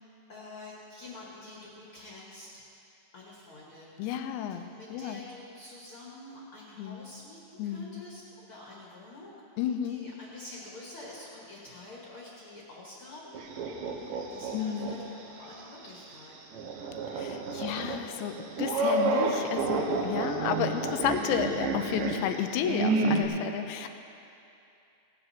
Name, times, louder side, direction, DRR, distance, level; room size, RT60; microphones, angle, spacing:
voice 1, 0.3-2.6 3.1-4.0 4.4-9.3 9.8-13.4 13.9-16.3 17.5-18.0, left 2 dB, 45° left, -5 dB, 1.8 m, -47 dB
voice 2, 4.0-5.2 6.8-7.1 7.6-8.0 9.6-10.1 14.5-15.0 17.2-23.9, left 9 dB, 90° left, 7 dB, 2.9 m, -32 dB
sound 1, 13.3-15.0 15.4-15.5 16.5-23.2, right 3 dB, 70° right, 2.3 m, -30 dB
17.0 x 12.0 x 4.3 m, 2.7 s
omnidirectional pair, 5.0 m